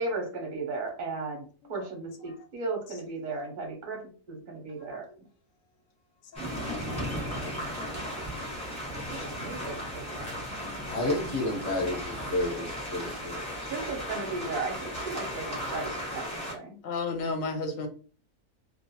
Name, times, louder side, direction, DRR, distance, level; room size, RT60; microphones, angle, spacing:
voice 1, 0.0-1.4 1.7-5.1 6.4-7.4 9.1-10.3 13.6-16.8, right 3 dB, 50° right, 1 dB, 0.6 m, -36 dB
voice 2, 6.3-6.8 8.8-9.3 16.8-17.9, left 3 dB, 70° left, 5 dB, 0.9 m, -35 dB
sound 1, 6.3-16.5, equal, 5° left, 0.7 m, -36 dB
voice 3, 10.9-13.4, left 2 dB, 35° left, 0 dB, 0.9 m, -30 dB
2.4 x 2.2 x 2.8 m, 0.39 s
omnidirectional pair, 1.6 m